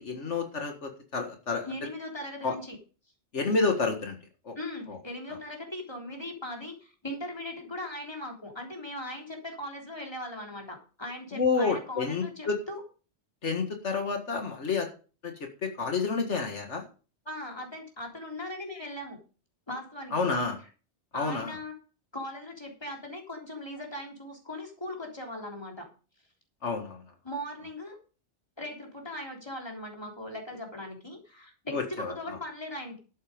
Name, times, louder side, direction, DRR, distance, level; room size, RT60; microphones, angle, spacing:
voice 1, 0.0-1.7 2.4-2.5 3.3-4.2 4.5-4.6 4.9-5.0 11.3-12.6 13.4-14.9 15.2-15.3 15.6-16.8 20.1-20.6 21.1-21.5 26.6-27.0 31.7-32.1, left 4 dB, 80° left, 4 dB, 2.1 m, -29 dB
voice 2, 1.7-2.8 4.6-12.8 17.3-19.2 19.7-20.2 21.1-21.7 22.1-25.9 27.2-28.0 28.6-33.0, left 1 dB, 20° left, 1 dB, 3.6 m, -39 dB
12.0 x 8.4 x 5.2 m, 0.36 s
omnidirectional pair, 1.2 m